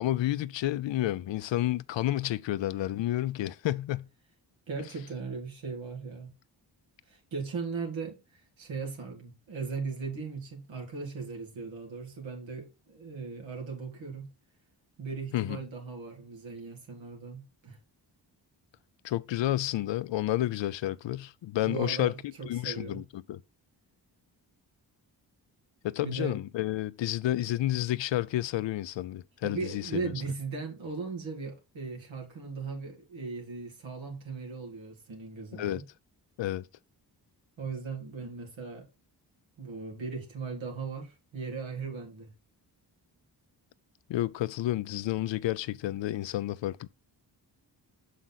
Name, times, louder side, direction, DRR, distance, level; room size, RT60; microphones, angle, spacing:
voice 1, 0.0-4.1 15.3-15.6 19.0-22.1 22.5-23.4 25.8-30.0 35.5-35.8 36.4-36.7 44.1-46.9, left 14 dB, 75° left, 0.5 m, -30 dB
voice 2, 4.7-6.3 7.1-14.3 15.0-17.8 21.6-23.0 26.0-26.4 29.4-35.8 37.6-38.9 39.6-42.3, right 4 dB, 85° right, 2.3 m, -38 dB
6.2 x 5.0 x 4.1 m
cardioid pair, 55°, 45 cm